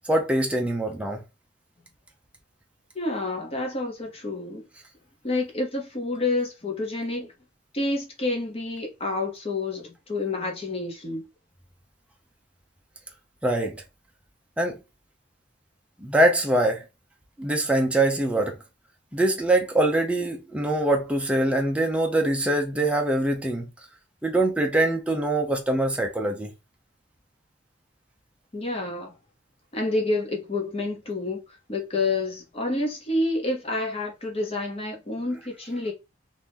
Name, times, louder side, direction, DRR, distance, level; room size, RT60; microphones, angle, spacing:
voice 1, 0.1-1.2 13.4-13.8 14.6-14.8 16.0-16.8 17.4-18.6 19.1-23.7 24.2-26.5, right 1 dB, 5° right, 0.6 m, -23 dB
voice 2, 2.9-4.6 5.2-7.3 7.7-11.2 28.5-29.1 29.7-31.4 31.7-35.9, left 2 dB, 30° left, 1.0 m, -28 dB
2.9 x 2.5 x 3.5 m
head